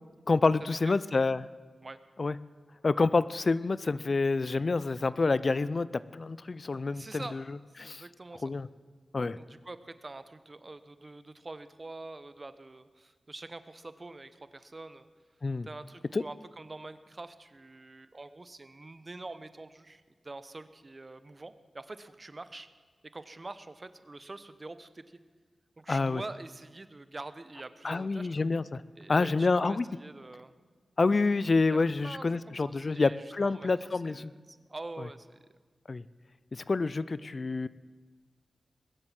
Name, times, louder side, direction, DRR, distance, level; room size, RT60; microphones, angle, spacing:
voice 1, 0.3-1.5 2.2-2.4 2.8-7.4 7.8-8.0 8.4-8.7 9.1-9.4 15.4-15.7 16.1-16.2 25.9-26.2 27.8-28.8 29.1-29.9 31.0-34.3 35.9-36.0 36.5-37.7, left 3 dB, 50° left, 17 dB, 0.4 m, -28 dB
voice 2, 6.7-7.3 7.8-8.5 9.3-15.1 15.6-22.7 23.1-25.2 25.8-28.4 29.0-30.5 31.7-35.5, right 2 dB, 35° right, 13 dB, 0.9 m, -45 dB
21.0 x 7.8 x 7.5 m, 1.5 s
cardioid pair, 60°, 0 cm